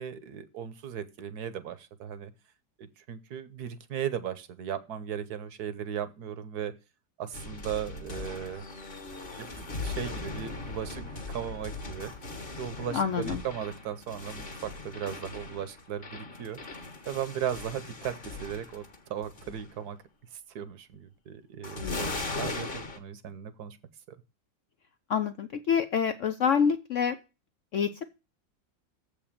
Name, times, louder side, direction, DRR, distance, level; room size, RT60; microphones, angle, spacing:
voice 1, 0.0-2.3 2.8-6.7 7.2-8.7 9.4-12.1 12.6-16.6 17.0-20.0 20.5-23.8 24.1-24.2, right 9 dB, 65° right, 13 dB, 1.2 m, -37 dB
sound 1, 7.3-19.0 19.2-19.7 21.6-23.0, left 3 dB, 35° left, 1.4 m, -39 dB
voice 2, 12.9-13.4 21.8-22.0 25.1-27.2 27.7-28.0, left 7 dB, 75° left, 10 dB, 0.7 m, -27 dB
7.5 x 5.1 x 7.2 m, 0.29 s
omnidirectional pair, 2.0 m